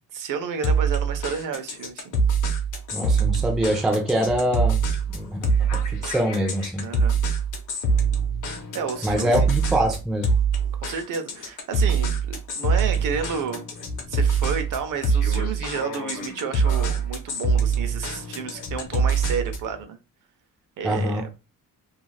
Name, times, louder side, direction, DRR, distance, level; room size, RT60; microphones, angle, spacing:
voice 1, 0.1-2.2 6.8-7.2 8.7-9.5 10.8-13.7 14.1-20.0 20.8-21.2, right 6 dB, 60° right, 0.6 m, -31 dB
sound 1, 0.6-19.7, right 4 dB, 55° left, 0.7 m, -24 dB
voice 2, 2.9-4.8 5.1-5.5 5.9-6.8 9.0-10.3 20.8-21.2, right 1 dB, ahead, 0.3 m, -24 dB
2.4 x 2.3 x 3.1 m
cardioid pair, 170°, 36 cm